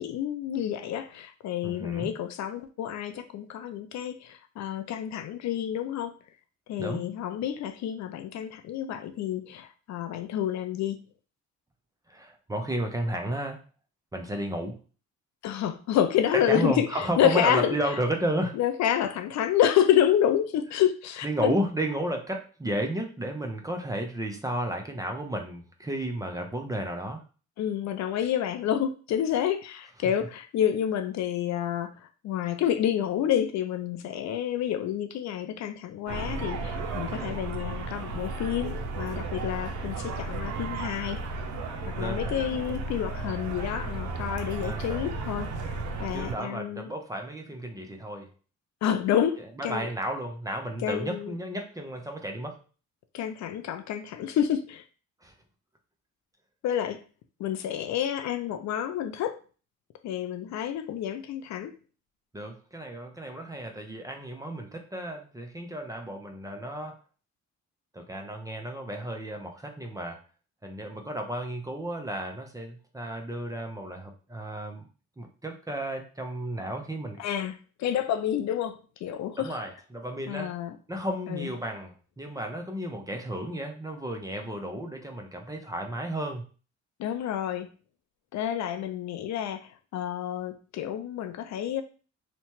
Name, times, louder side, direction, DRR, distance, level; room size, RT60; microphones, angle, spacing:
voice 1, 0.0-6.1 6.7-11.0 15.4-17.8 18.5-21.5 27.6-41.2 41.9-45.5 46.0-46.9 48.8-49.9 50.8-51.4 53.1-54.8 56.6-57.0 57.4-59.4 60.0-61.7 77.2-79.6 80.3-80.8 81.3-81.5 87.0-87.7 88.3-91.8, left 10 dB, 65° left, 9 dB, 0.4 m, -29 dB
voice 2, 1.6-2.1 6.8-7.0 12.1-13.6 14.1-14.8 16.5-18.6 21.2-27.2 36.7-37.1 42.0-42.4 44.6-45.1 46.1-48.3 49.6-52.6 55.2-55.3 62.3-67.0 67.9-70.2 70.6-74.9 75.2-77.2 79.4-80.5 80.9-86.5, right 1 dB, 10° right, 3 dB, 0.5 m, -33 dB
sound 1, 36.1-46.4, right 3 dB, 70° right, 0.5 m, -34 dB
2.9 x 2.2 x 2.9 m, 0.36 s
cardioid pair, 90°, 30 cm